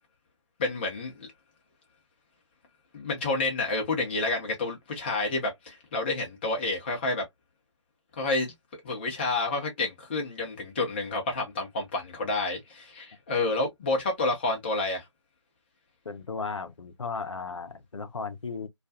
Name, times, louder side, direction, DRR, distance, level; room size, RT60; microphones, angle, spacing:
voice 1, 0.6-1.3 2.9-7.2 8.2-8.5 8.8-15.0, left 2 dB, 20° left, 0.7 m, -29 dB
voice 2, 16.0-18.7, left 4 dB, 75° left, 0.6 m, -35 dB
2.4 x 2.3 x 2.6 m
figure-of-eight pair, 155°, 16 cm